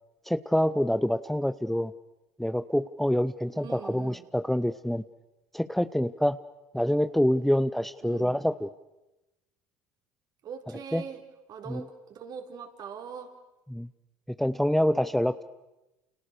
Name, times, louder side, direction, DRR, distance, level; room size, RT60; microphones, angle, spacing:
voice 1, 0.3-1.9 2.4-5.0 5.5-6.4 6.7-8.7 10.9-11.0 11.7-11.8 13.7-13.9 14.4-15.4, equal, ahead, 13 dB, 0.9 m, -26 dB
voice 2, 3.5-4.3 8.0-8.4 10.4-11.2 11.5-13.3, right 6 dB, 50° right, 5 dB, 4.4 m, -42 dB
29.5 x 29.0 x 6.8 m, 1.0 s
hypercardioid pair, 70°, 9 cm